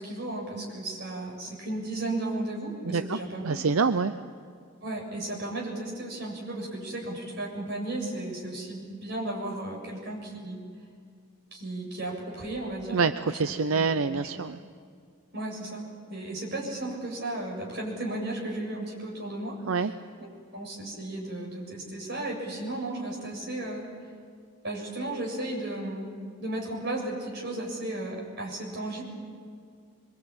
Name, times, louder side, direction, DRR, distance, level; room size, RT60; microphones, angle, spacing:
voice 1, 0.0-3.6 4.8-10.6 11.5-13.0 13.3-13.4 13.7-14.3 15.3-15.8 16.1-19.9 20.2-23.8 24.6-26.1 26.4-29.0, right 2 dB, 50° right, -1 dB, 7.4 m, -34 dB
voice 2, 2.8-3.2 3.4-4.1 12.9-14.6 19.7-19.9, right 4 dB, 80° right, 11 dB, 0.6 m, -26 dB
24.5 x 24.5 x 8.8 m, 2.1 s
head